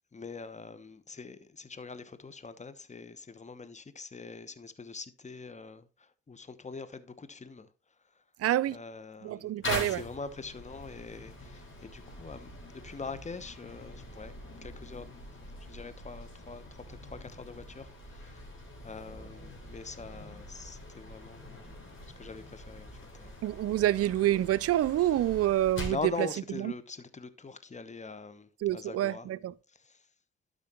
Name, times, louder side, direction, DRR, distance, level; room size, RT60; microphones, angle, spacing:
voice 1, 0.1-8.2 8.7-14.3 14.6-15.3 15.6-18.5 18.8-23.4 23.8-24.0 25.0-25.2 25.8-29.3 29.7-30.1, left 4 dB, 25° left, 1.0 m, -44 dB
voice 2, 8.4-8.8 9.2-10.0 23.4-26.0 26.6-26.7 28.6-29.5, right 13 dB, 55° right, 0.5 m, -27 dB
sound 1, 9.6-26.1, left 1 dB, 45° left, 3.4 m, -44 dB
12.0 x 5.3 x 3.0 m
hypercardioid pair, 45°, 29 cm